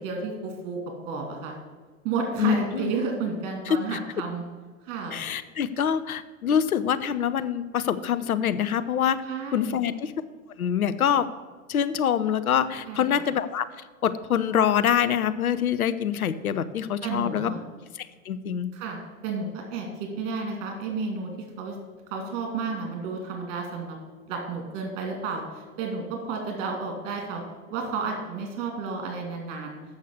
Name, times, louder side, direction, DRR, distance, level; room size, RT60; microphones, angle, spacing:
voice 1, 0.0-1.5 2.0-4.4 4.8-5.2 9.3-9.8 12.9-13.2 17.0-17.6 18.7-21.7 22.1-24.0 24.3-27.4 27.7-29.7, right 4 dB, 45° right, 2 dB, 2.6 m, -32 dB
voice 2, 2.4-2.9 3.7-4.0 5.1-9.2 9.5-10.1 10.6-11.3 11.7-17.5 17.9-18.7, left 9 dB, 85° left, 13 dB, 0.7 m, -25 dB
7.9 x 6.4 x 7.0 m, 1.5 s
hypercardioid pair, 100°, 42 cm